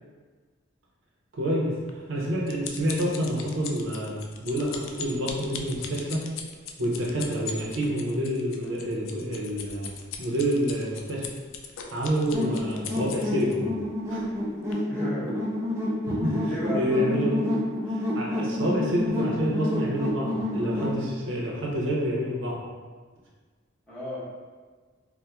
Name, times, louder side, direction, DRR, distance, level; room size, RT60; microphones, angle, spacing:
voice 1, 1.3-1.7 2.1-6.2 6.8-11.3 11.9-13.7 14.1-14.2 16.2-16.4 16.7-17.5 18.1-22.6, equal, 75° right, -4 dB, 0.7 m, -28 dB
sound 1, 1.9-13.6 14.2-14.4 14.7-14.8, left 6 dB, 80° left, 0.3 m, -39 dB
sound 2, 12.3-21.0, left 1 dB, 15° right, 0.5 m, -29 dB
voice 2, 14.8-15.4 16.4-16.9 23.9-24.2, left 1 dB, 5° left, -11 dB, 0.9 m, -33 dB
4.2 x 2.2 x 2.3 m, 1.4 s
head